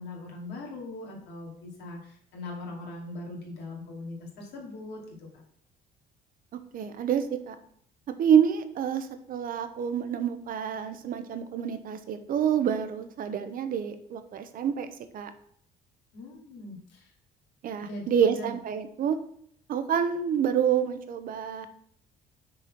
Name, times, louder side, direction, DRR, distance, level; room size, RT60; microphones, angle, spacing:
voice 1, 0.0-5.0 5.3-5.4 16.1-17.1 17.8-18.5, left 2 dB, 80° left, 0 dB, 2.5 m, -41 dB
voice 2, 6.5-7.6 8.2-14.9 15.1-15.3 17.6-19.2 19.7-21.7, right 8 dB, 55° right, 9 dB, 0.9 m, -27 dB
6.5 x 4.2 x 6.0 m, 0.67 s
cardioid pair, 110°, 17 cm